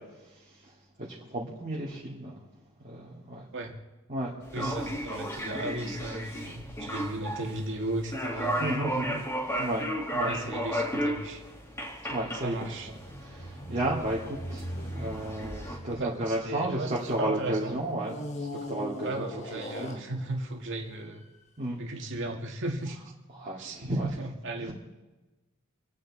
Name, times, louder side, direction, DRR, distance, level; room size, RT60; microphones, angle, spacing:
voice 1, 1.3-2.4 2.8-3.5 4.1-4.7 8.6-9.2 9.6-9.9 10.1-10.3 12.1-12.6 12.9-13.0 13.2-14.6 14.9-19.2 19.8-20.0 21.6-21.8 23.4-24.1 24.6-24.7, right 1 dB, 35° right, -5 dB, 2.4 m, -32 dB
sound 1, 4.4-15.8, equal, 10° left, 2.4 m, -34 dB
voice 2, 4.5-8.7 10.3-11.4 12.4-12.9 15.9-17.7 19.0-21.2 21.8-23.0 23.6-24.7, right 2 dB, 55° right, 2 dB, 2.2 m, -35 dB
sound 2, 12.6-17.3 18.0-20.5 21.2-21.4, equal, 30° left, 1.4 m, -40 dB
27.0 x 9.4 x 4.2 m, 1.1 s
head